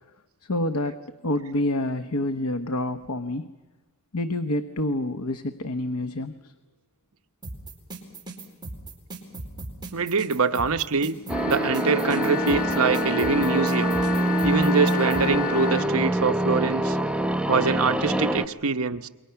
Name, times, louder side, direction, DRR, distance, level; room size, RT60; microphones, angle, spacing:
voice 1, 0.5-3.5 4.1-6.5, left 1 dB, 80° left, 9 dB, 1.0 m, -28 dB
sound 1, 7.4-15.2, right 2 dB, 20° right, 4.6 m, -37 dB
voice 2, 9.9-11.2 11.5-14.0 14.4-17.0 17.5-19.1, right 4 dB, 70° right, 8 dB, 1.0 m, -24 dB
Wind instrument woodwind instrument, 11.2-16.1, left 4 dB, 40° left, 0.8 m, -31 dB
sound 2, 11.3-18.5, right 1 dB, 5° right, 0.8 m, -25 dB
28.5 x 23.0 x 5.8 m, 1.2 s
head